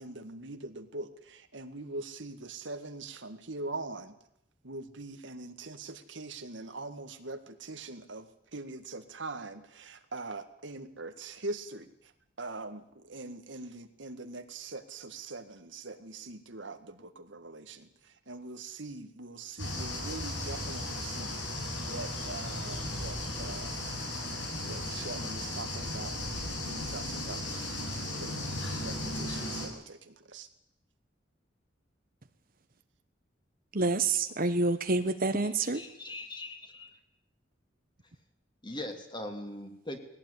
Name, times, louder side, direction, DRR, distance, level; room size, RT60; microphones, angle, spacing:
voice 1, 0.0-4.2 4.6-12.1 12.4-21.3 21.8-23.9 24.6-26.2 26.6-27.4 28.2-28.4 28.7-30.5, right 2 dB, 80° right, 8 dB, 1.9 m, -42 dB
sound 1, 19.6-29.7, left 1 dB, 80° left, 7.1 m, -36 dB
voice 2, 33.7-35.8, right 3 dB, 50° right, 9 dB, 1.3 m, -28 dB
voice 3, 35.7-36.9 38.6-40.0, left 1 dB, 25° left, 5 dB, 2.9 m, -40 dB
20.0 x 17.5 x 9.8 m, 0.77 s
head